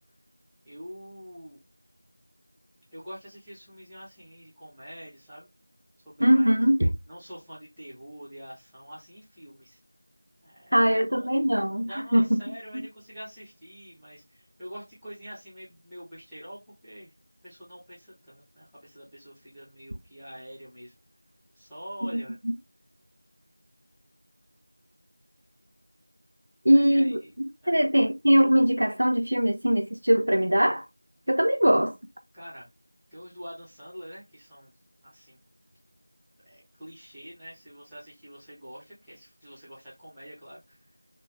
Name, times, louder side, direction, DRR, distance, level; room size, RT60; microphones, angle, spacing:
voice 1, 0.6-1.6 2.9-5.5 6.0-6.5 7.1-9.8 10.4-11.5 11.8-17.1 17.4-20.9 21.5-22.4 26.7-27.3 27.6-27.9 32.3-32.7 33.1-34.7 35.0-35.4 36.4-40.8, equal, ahead, 0.5 m, -45 dB
voice 2, 6.2-6.9 10.7-12.3 22.1-22.2 26.6-27.2 27.7-30.8 31.3-31.9, equal, 50° right, 0.7 m, -21 dB
3.2 x 3.1 x 2.6 m
figure-of-eight pair, 175°, 0 cm